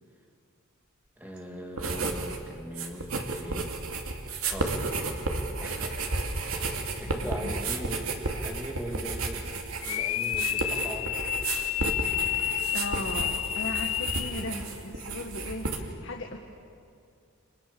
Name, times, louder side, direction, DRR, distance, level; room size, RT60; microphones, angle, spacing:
voice 1, 1.2-3.7 4.5-4.8 5.6-8.1 8.4-11.2, equal, 10° right, 2 dB, 2.7 m, -40 dB
sound 1, 1.8-2.4 2.7-15.8, right 3 dB, 85° right, 2.6 m, -32 dB
voice 2, 7.1-7.5 12.7-16.4, left 1 dB, 60° left, 2 dB, 1.7 m, -37 dB
sound 2, 9.8-14.5, left 13 dB, 80° left, 0.6 m, -30 dB
29.5 x 26.5 x 7.1 m, 2.4 s
head